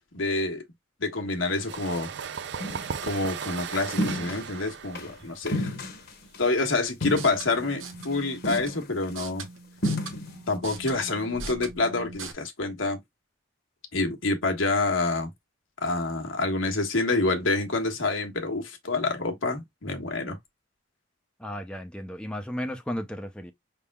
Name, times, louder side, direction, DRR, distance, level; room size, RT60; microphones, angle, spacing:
voice 1, 0.1-0.6 1.0-2.1 3.0-5.7 6.4-9.5 10.5-13.0 13.9-15.3 15.8-20.4, left 3 dB, 85° left, 1.3 m, -27 dB
sound 1, 1.4-6.9, right 7 dB, 60° right, 0.5 m, -37 dB
sound 2, 2.6-2.9 4.0-4.5 4.9-5.1 5.5-6.5 7.0-7.7 8.0-8.1 8.4-9.1 9.8-10.4, left 1 dB, 55° left, 1.1 m, -31 dB
sound 3, 7.0-12.3, right 4 dB, 90° right, 1.1 m, -41 dB
voice 2, 21.4-23.5, equal, 5° left, 0.6 m, -34 dB
5.6 x 3.6 x 2.2 m
head